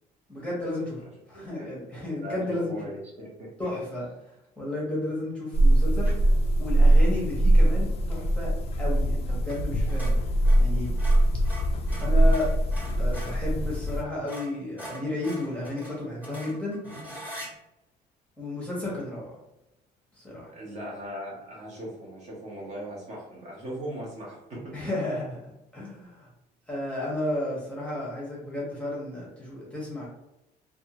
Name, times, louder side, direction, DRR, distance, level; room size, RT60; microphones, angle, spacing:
voice 1, 0.3-1.0 1.3-2.9 3.6-6.3 6.6-8.5 8.8-10.2 10.6-10.9 12.0-12.5 12.9-16.9 18.4-19.4 20.1-20.6 24.7-26.3 26.7-30.1, left 1 dB, 5° left, -5 dB, 0.8 m, -33 dB
voice 2, 1.3-1.7 2.2-3.7 20.5-24.8, right 1 dB, 40° right, -3 dB, 0.9 m, -39 dB
sound 1, 5.5-14.0, right 1 dB, 35° left, 0.4 m, -22 dB
sound 2, 6.0-6.3 9.4-9.6 9.9-13.4 13.9-14.0 14.3-17.5, equal, 10° right, 1.1 m, -42 dB
2.5 x 2.3 x 2.8 m, 0.88 s
cardioid pair, 145°, 18 cm